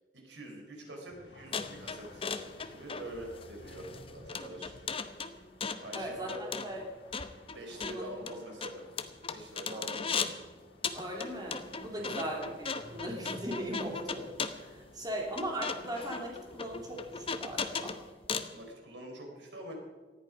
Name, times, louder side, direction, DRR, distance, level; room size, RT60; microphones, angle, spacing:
voice 1, 0.1-2.3 2.7-4.8 5.8-6.4 7.5-8.9 9.3-10.3 11.9-12.2 15.0-15.2 18.5-19.7, right 1 dB, 85° right, 1 dB, 4.6 m, -45 dB
sound 1, 1.1-17.8, left 1 dB, 90° left, 4.0 m, -56 dB
sound 2, 1.5-10.4 10.8-18.6, left 5 dB, 30° left, 0.8 m, -38 dB
voice 2, 5.9-6.8 7.8-8.1 9.7-9.9 10.9-14.3 14.5-17.9, right 1 dB, 20° right, -1 dB, 3.2 m, -39 dB
19.0 x 14.0 x 5.3 m, 1.4 s
head